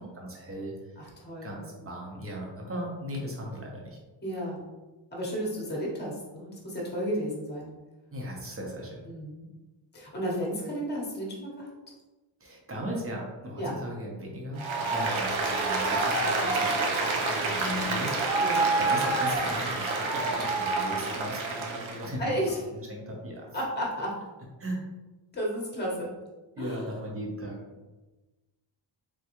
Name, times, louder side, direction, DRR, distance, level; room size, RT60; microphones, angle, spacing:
voice 1, 0.0-1.0 1.4-4.0 8.1-9.0 12.4-18.4 18.8-22.2 22.9-23.5 24.6-24.9 26.5-27.6, equal, 30° right, -1 dB, 0.8 m, -37 dB
voice 2, 1.0-1.5 4.2-4.7 5.1-7.7 9.0-9.5 9.9-11.7 13.6-13.7 18.0-18.1 18.4-18.7 22.2-22.6 23.5-24.2 25.3-26.1 26.6-26.9, equal, 20° left, -3 dB, 1.0 m, -33 dB
Applause, 14.6-22.1, right 3 dB, 70° right, 0.8 m, -27 dB
3.8 x 3.6 x 2.9 m, 1.2 s
wide cardioid pair, 170°, 48 cm